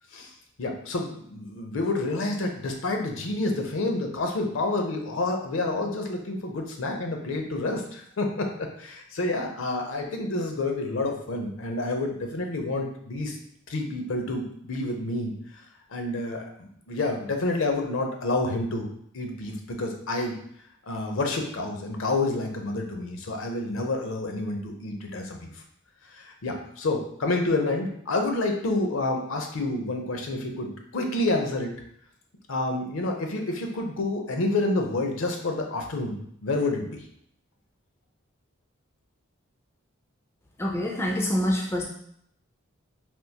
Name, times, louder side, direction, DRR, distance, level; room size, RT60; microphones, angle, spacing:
voice 1, 0.6-13.4 13.7-15.3 15.9-18.9 19.1-20.4 20.9-25.5 26.1-31.8 32.5-37.0, left 2 dB, 70° left, 3 dB, 0.6 m, -29 dB
voice 2, 40.6-41.8, equal, 10° left, -1 dB, 0.3 m, -26 dB
3.5 x 2.5 x 2.8 m, 0.69 s
head